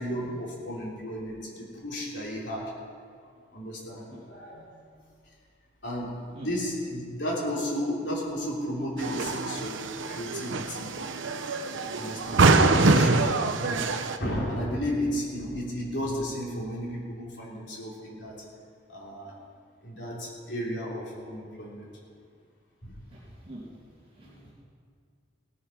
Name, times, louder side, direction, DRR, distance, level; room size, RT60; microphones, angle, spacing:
voice 1, 0.0-2.7 3.5-4.7 5.8-10.9 12.0-13.9 14.2-18.4 18.9-19.4 19.8-21.9 22.8-22.9 24.2-24.5, equal, 65° left, -4 dB, 3.4 m, -33 dB
sound 1, 9.0-14.2, right 3 dB, 85° right, 0.7 m, -24 dB
voice 2, 11.7-12.5 23.0-23.7 24.0-24.5, right 1 dB, 30° right, -7 dB, 2.7 m, -47 dB
17.5 x 9.5 x 5.9 m, 2.1 s
head